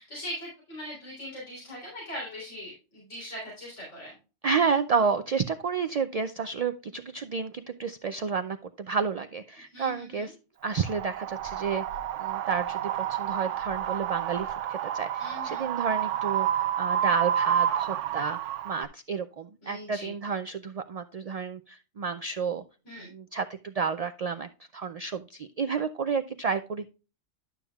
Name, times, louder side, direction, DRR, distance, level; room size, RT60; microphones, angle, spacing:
voice 1, 0.0-4.2 9.7-10.3 15.2-15.7 19.6-20.1 22.9-23.1, left 1 dB, 85° left, -5 dB, 4.1 m, -40 dB
voice 2, 4.4-10.4 10.6-11.8 12.2-18.4 18.6-22.6 23.0-26.9, right 5 dB, 65° right, 10 dB, 0.3 m, -30 dB
Wind, 10.7-18.8, right 10 dB, 85° right, 0.9 m, -29 dB
11.5 x 7.1 x 2.3 m, 0.32 s
omnidirectional pair, 1.2 m